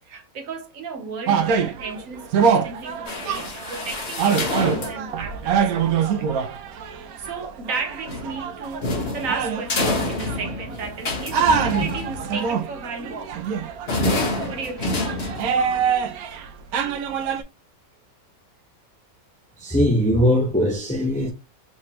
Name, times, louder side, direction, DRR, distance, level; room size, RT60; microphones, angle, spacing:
voice 1, 0.0-6.3 6.7-6.9 7.2-13.4 14.5-15.1, right 4 dB, 70° right, 1.2 m, -34 dB
sound 1, 1.3-10.9 11.3-16.5 16.7-17.4, right 6 dB, 85° right, 1.1 m, -24 dB
sound 2, 3.1-5.1 8.1-12.5 13.9-15.8, left 2 dB, 45° left, 1.2 m, -28 dB
voice 2, 19.6-21.3, equal, 10° left, 0.6 m, -20 dB
3.3 x 3.3 x 2.8 m
omnidirectional pair, 1.5 m